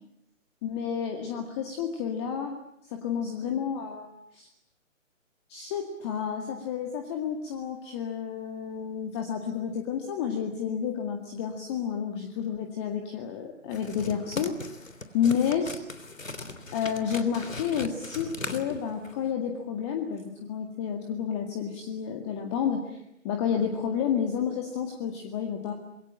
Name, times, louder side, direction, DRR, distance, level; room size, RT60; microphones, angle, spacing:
voice 1, 0.6-2.6 2.9-4.5 5.5-14.6 15.1-15.8 16.7-25.7, left 7 dB, 20° left, 4 dB, 2.1 m, -30 dB
sound 1, 13.7-19.3, left 2 dB, 75° left, 3.4 m, -39 dB
26.5 x 23.0 x 8.9 m, 0.78 s
figure-of-eight pair, 140°, 39 cm